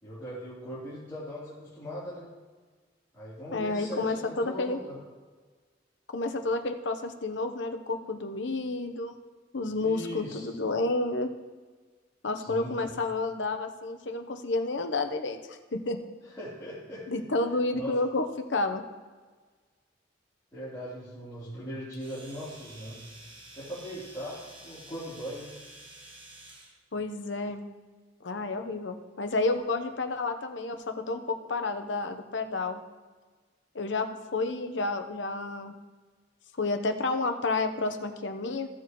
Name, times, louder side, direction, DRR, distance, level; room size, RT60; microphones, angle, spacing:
voice 1, 0.0-2.3 3.1-4.9 9.8-10.6 12.4-13.0 16.4-17.2 17.8-18.0 20.5-23.0 23.5-25.5, equal, 20° left, -12 dB, 3.2 m, -40 dB
voice 2, 3.5-4.8 6.1-9.2 9.5-11.3 12.2-16.0 17.1-18.8 26.9-27.6 28.2-32.8 33.7-35.7 36.6-38.7, left 3 dB, 75° left, 7 dB, 0.9 m, -30 dB
Domestic sounds home sounds, 21.9-26.8, right 2 dB, 25° right, 1.4 m, -50 dB
15.5 x 7.3 x 3.0 m, 1.4 s
head